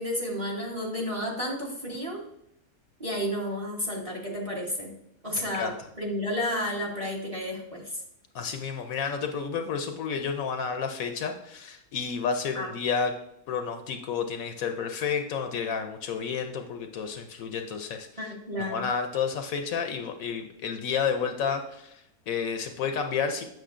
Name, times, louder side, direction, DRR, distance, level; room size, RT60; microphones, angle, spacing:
voice 1, 0.0-2.2 3.0-4.9 5.2-7.9 12.5-12.7 18.2-18.9, left 1 dB, 25° right, -2 dB, 1.0 m, -31 dB
voice 2, 8.3-13.1 13.5-18.3 18.6-23.4, left 6 dB, 70° left, 6 dB, 1.0 m, -31 dB
7.8 x 6.0 x 2.5 m, 0.79 s
omnidirectional pair, 1.6 m